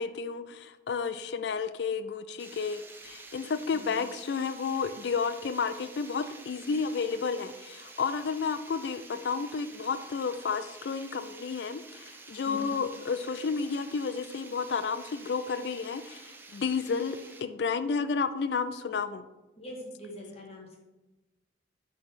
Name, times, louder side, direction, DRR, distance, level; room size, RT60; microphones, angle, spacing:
voice 1, 0.0-19.2, left 5 dB, 60° left, 12 dB, 0.4 m, -31 dB
Water, 2.4-17.4, right 3 dB, 10° right, 0.6 m, -49 dB
voice 2, 3.7-4.0 12.4-12.8 19.6-20.8, equal, 35° left, -2 dB, 1.9 m, -43 dB
5.9 x 4.9 x 5.6 m, 1.1 s
head